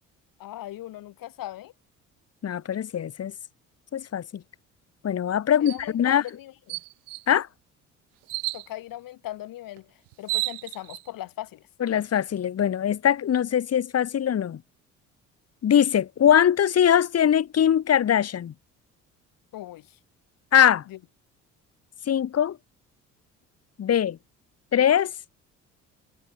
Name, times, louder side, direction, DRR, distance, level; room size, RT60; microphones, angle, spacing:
voice 1, 0.4-1.7 5.6-6.8 8.5-9.9 10.2-11.6 19.5-20.0 20.9-21.0, left 14 dB, 60° left, 6.8 m, -39 dB
voice 2, 2.4-3.3 3.9-4.4 5.0-6.2 7.3-7.5 11.8-14.6 15.6-18.5 20.5-20.8 22.1-22.6 23.8-24.2 24.7-25.1, left 9 dB, 40° left, 1.7 m, -22 dB
sound 1, 5.7-5.8 6.3-6.4 6.7-7.3 8.3-8.7 9.8-9.9 10.1-11.0, right 25 dB, 75° right, 0.9 m, -31 dB
hypercardioid pair, 55°, 38 cm